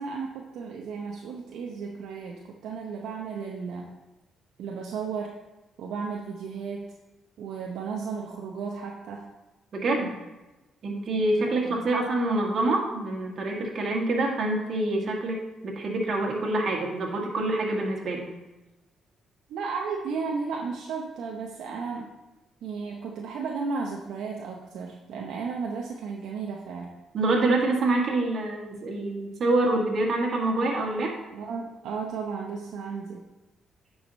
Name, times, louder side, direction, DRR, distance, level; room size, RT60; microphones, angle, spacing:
voice 1, 0.0-3.9 4.6-5.4 5.8-6.9 7.4-9.3 11.3-11.8 19.5-22.1 22.6-26.9 31.3-33.3, right 5 dB, 80° right, -1 dB, 0.8 m, -34 dB
voice 2, 9.7-10.2 10.8-15.4 15.6-18.3 27.1-31.2, right 2 dB, 55° right, 0 dB, 1.8 m, -26 dB
9.6 x 4.9 x 4.1 m, 1.1 s
cardioid pair, 90°, 0 cm